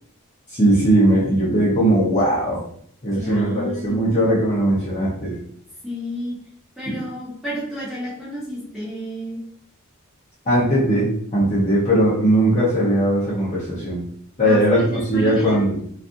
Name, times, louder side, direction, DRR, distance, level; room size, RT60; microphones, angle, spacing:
voice 1, 0.5-2.6 3.0-5.4 6.9-7.0 10.5-14.0 14.4-15.8, right 1 dB, 35° left, -7 dB, 0.7 m, -19 dB
voice 2, 3.1-4.3 5.8-6.4 6.8-9.4 14.4-15.6, left 1 dB, ahead, -8 dB, 1.0 m, -31 dB
2.5 x 2.4 x 2.6 m, 0.63 s
head